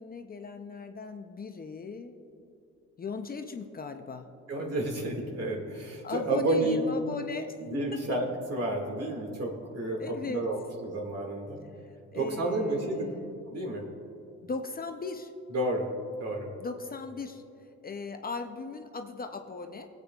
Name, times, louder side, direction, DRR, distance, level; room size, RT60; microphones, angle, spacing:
voice 1, 0.0-2.2 3.0-4.3 6.0-7.5 7.9-8.0 10.0-10.4 12.1-13.4 14.4-15.3 16.6-17.4 17.8-19.9, left 4 dB, 30° left, 6 dB, 0.5 m, -38 dB
voice 2, 4.5-6.9 7.7-11.6 12.1-13.0 13.5-13.8 15.5-15.9 16.2-16.5, right 1 dB, 55° right, 0 dB, 2.0 m, -31 dB
20.0 x 8.2 x 2.4 m, 2.6 s
cardioid pair, 90°, 30 cm